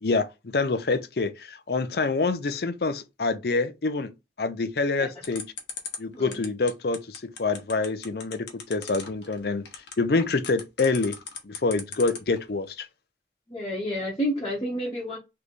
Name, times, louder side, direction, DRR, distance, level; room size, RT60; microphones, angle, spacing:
voice 1, 0.0-4.1 4.4-5.5 6.0-9.6 10.0-11.2 11.4-12.9, left 3 dB, 55° left, 0.5 m, -26 dB
sound 1, 5.2-12.4, left 6 dB, 75° left, 1.0 m, -37 dB
voice 2, 13.5-15.2, equal, 25° left, 1.2 m, -29 dB
3.3 x 3.2 x 4.0 m
head